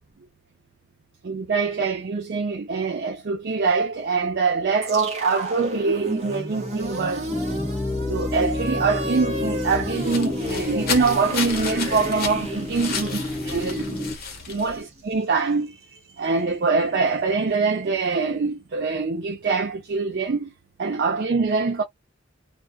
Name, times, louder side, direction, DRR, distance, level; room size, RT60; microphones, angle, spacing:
voice 1, 1.2-7.3 8.1-14.1 14.5-15.8 16.2-20.5 20.8-21.8, right 4 dB, 55° right, 0.5 m, -24 dB
sound 1, 4.8-15.0, equal, 35° right, 1.0 m, -32 dB
sound 2, 7.3-14.2, left 1 dB, 10° left, 0.5 m, -30 dB
sound 3, 9.7-14.8, left 5 dB, 50° left, 0.8 m, -33 dB
2.3 x 2.3 x 2.3 m
head